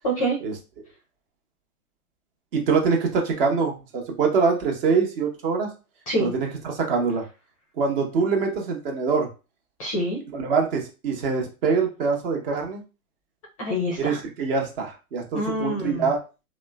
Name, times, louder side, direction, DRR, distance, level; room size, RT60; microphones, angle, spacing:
voice 1, 0.0-0.4 6.1-6.3 9.8-10.2 13.6-14.2 15.3-16.1, equal, 25° left, -2 dB, 0.4 m, -26 dB
voice 2, 2.5-5.7 6.2-7.2 7.8-9.3 10.3-12.8 14.0-16.2, right 5 dB, 40° right, 1 dB, 0.8 m, -24 dB
3.0 x 2.0 x 2.2 m, 0.31 s
hypercardioid pair, 120°, 46 cm